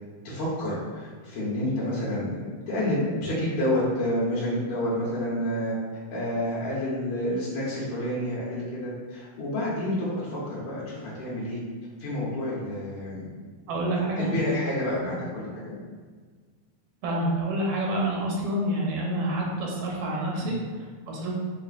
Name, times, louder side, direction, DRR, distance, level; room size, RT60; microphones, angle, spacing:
voice 1, 0.2-5.7 6.1-11.6 12.0-13.2 14.2-15.7 20.4-20.6, left 1 dB, 90° left, -8 dB, 1.1 m, -29 dB
voice 2, 13.7-14.3 15.0-15.1 17.0-21.3, right 1 dB, 80° right, -2 dB, 2.4 m, -28 dB
6.7 x 2.4 x 2.4 m, 1.5 s
omnidirectional pair, 4.0 m